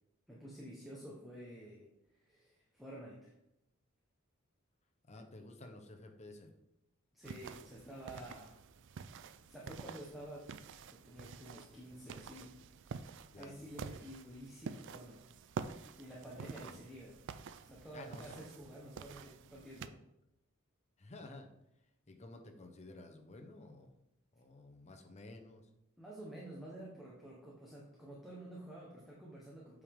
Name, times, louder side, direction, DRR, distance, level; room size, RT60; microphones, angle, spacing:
voice 1, 0.3-1.9 2.1-3.3 7.1-8.6 9.5-10.5 10.9-12.5 13.4-15.3 16.0-17.2 17.6-20.0 26.0-29.8, right 1 dB, ahead, -5 dB, 1.1 m, -50 dB
voice 2, 5.1-6.5 13.3-13.7 16.3-16.8 17.9-18.7 21.0-21.5 22.1-23.9 24.3-25.6, left 2 dB, 30° left, 4 dB, 0.9 m, -53 dB
sound 1, 7.2-19.9, right 5 dB, 60° right, 0.4 m, -49 dB
8.3 x 4.9 x 3.7 m, 0.85 s
head